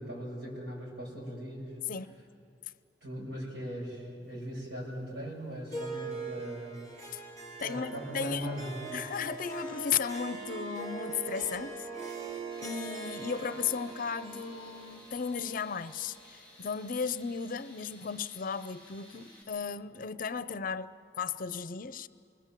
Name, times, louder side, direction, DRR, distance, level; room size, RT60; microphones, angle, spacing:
voice 1, 0.0-1.8 3.0-7.3 7.6-8.9, equal, 75° right, 7.1 m, -40 dB
Harp, 5.7-16.3, right 4 dB, 40° right, 7.8 m, -42 dB
voice 2, 7.6-8.5 8.9-11.9 12.6-22.1, left 6 dB, 50° left, 0.6 m, -35 dB
Tools, 12.5-19.4, equal, 25° right, 7.4 m, -56 dB
27.0 x 21.0 x 7.5 m
head